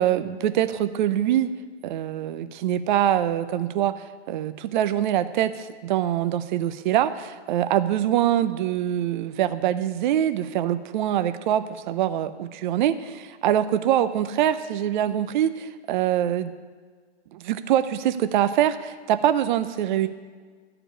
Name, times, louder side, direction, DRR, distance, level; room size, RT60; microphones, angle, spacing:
voice 1, 0.0-1.5 1.8-16.5 17.3-20.1, right 11 dB, 45° right, 11 dB, 0.7 m, -24 dB
14.0 x 4.9 x 8.8 m, 1.5 s
hypercardioid pair, 120°, 33 cm